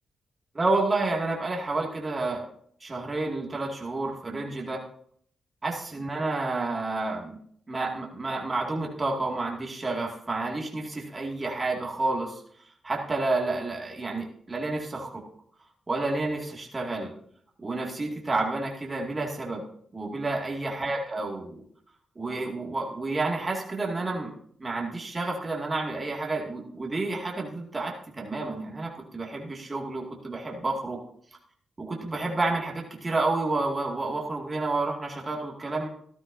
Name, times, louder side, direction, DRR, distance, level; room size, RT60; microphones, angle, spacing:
voice 1, 0.5-2.4 2.8-4.8 5.6-7.4 7.7-12.4 12.8-15.2 15.9-17.1 17.6-19.6 19.9-21.6 22.2-24.3 24.6-31.0 31.8-35.9, right 2 dB, 30° right, -1 dB, 2.3 m, -30 dB
14.0 x 12.0 x 2.8 m, 0.63 s
cardioid pair, 60°, 0 cm